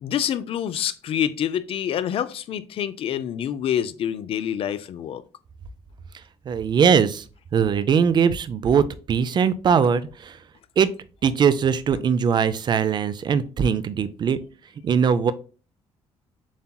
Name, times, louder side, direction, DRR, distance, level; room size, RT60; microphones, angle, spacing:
voice 1, 0.0-5.2, left 9 dB, 55° left, 0.4 m, -27 dB
voice 2, 6.5-7.2 7.5-10.4 10.8-10.9 11.2-14.4 14.8-15.3, right 7 dB, 40° right, 0.4 m, -21 dB
7.1 x 2.9 x 2.2 m
cardioid pair, 105°, 11 cm